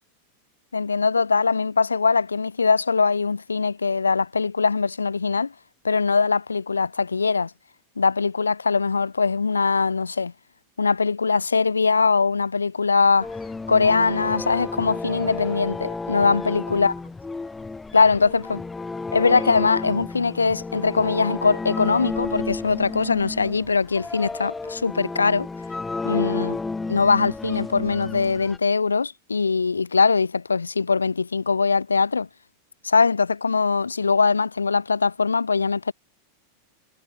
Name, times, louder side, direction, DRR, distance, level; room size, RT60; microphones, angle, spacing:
voice 1, 0.7-5.5 5.8-7.5 8.0-10.3 10.8-13.3 13.7-16.9 17.9-18.6 19.1-25.5 26.0-26.6 26.9-32.3 32.8-35.9, left 4 dB, 75° left, 1.3 m, -21 dB
sound 1, 13.2-28.6, left 3 dB, 10° left, 2.4 m, -32 dB
figure-of-eight pair, 90°, 0 cm